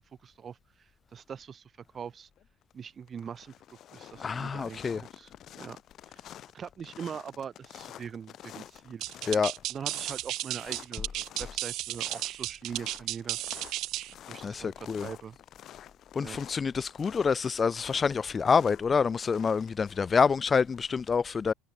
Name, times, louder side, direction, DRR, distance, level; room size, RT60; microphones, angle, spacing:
voice 1, 0.0-2.3 2.7-5.8 6.1-6.2 6.5-9.3 9.7-13.4 14.3-14.7 15.0-15.4 16.2-16.4, right 7 dB, 35° right, 1.4 m, -42 dB
sound 1, 2.4-2.7 3.0-20.9, left 11 dB, 50° left, 6.4 m, -50 dB
voice 2, 4.2-5.0 9.3-9.5 14.4-15.1 16.1-21.5, left 5 dB, 25° left, 0.4 m, -27 dB
sound 2, 9.0-14.1, right 16 dB, 60° right, 0.6 m, -34 dB
supercardioid pair, 100°, 0 cm